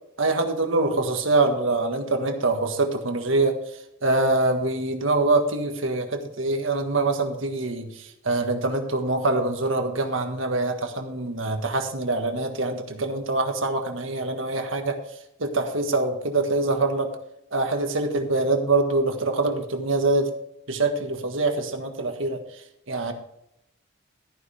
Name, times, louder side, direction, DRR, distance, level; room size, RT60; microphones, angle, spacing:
voice 1, 0.2-3.6 4.0-15.0 15.4-17.1 17.5-20.3 20.7-22.4 22.9-23.1, right 2 dB, 80° right, 5 dB, 1.7 m, -24 dB
14.0 x 10.0 x 3.5 m, 0.79 s
head